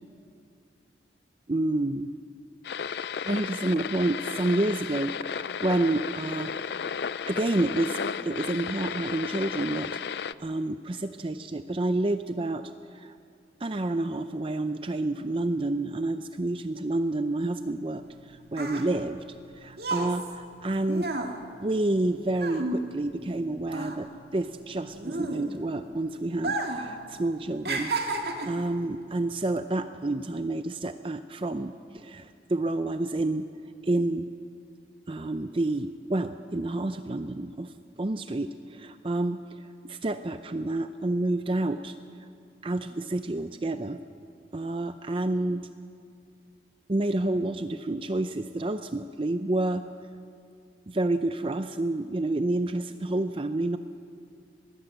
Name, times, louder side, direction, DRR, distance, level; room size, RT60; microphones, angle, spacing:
voice 1, 1.5-2.1 3.2-6.5 7.3-13.2 13.6-19.2 19.5-21.1 21.6-27.9 28.5-33.5 33.8-34.3 35.1-37.7 38.0-41.9 42.6-44.0 44.5-45.7 46.9-49.8 50.9-53.8, right 2 dB, 30° right, 9 dB, 0.5 m, -29 dB
sound 1, 2.6-10.3, left 6 dB, 65° left, 0.4 m, -34 dB
sound 2, 18.1-23.4 23.7-25.8 26.3-26.9 27.2-28.7 29.4-29.6, right 2 dB, 60° right, 1.9 m, -32 dB
21.5 x 16.5 x 8.0 m, 2.3 s
head